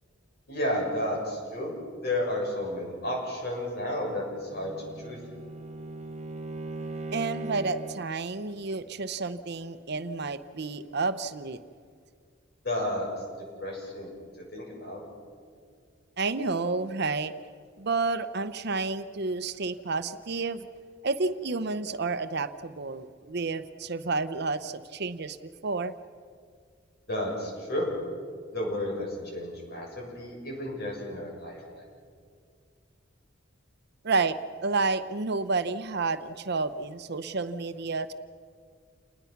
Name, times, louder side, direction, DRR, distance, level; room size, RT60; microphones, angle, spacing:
voice 1, 0.5-1.7 2.0-4.7 5.0-5.2 12.6-13.1 13.6-14.1 14.5-15.0 27.1-27.9 28.5-29.1 29.3-31.6, left 1 dB, 55° left, -1 dB, 7.6 m, -32 dB
Bowed string instrument, 4.3-8.2, right 2 dB, 35° right, 1.1 m, -39 dB
voice 2, 7.1-11.6 16.2-17.3 17.8-20.7 21.0-25.9 34.0-38.1, right 3 dB, 60° right, 12 dB, 0.8 m, -30 dB
29.0 x 20.5 x 6.0 m, 2.1 s
head